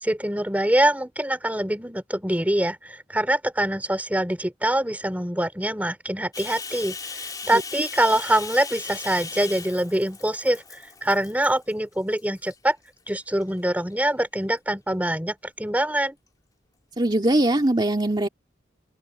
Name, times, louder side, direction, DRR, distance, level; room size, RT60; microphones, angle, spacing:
voice 1, 0.0-12.8 13.1-16.1, right 1 dB, 10° right, 3.0 m, -24 dB
Bathtub (filling or washing), 6.3-11.7 12.1-12.6 13.1-13.9, left 4 dB, 20° left, 3.0 m, -38 dB
voice 2, 17.0-18.3, right 1 dB, 25° right, 2.2 m, -21 dB
open air
head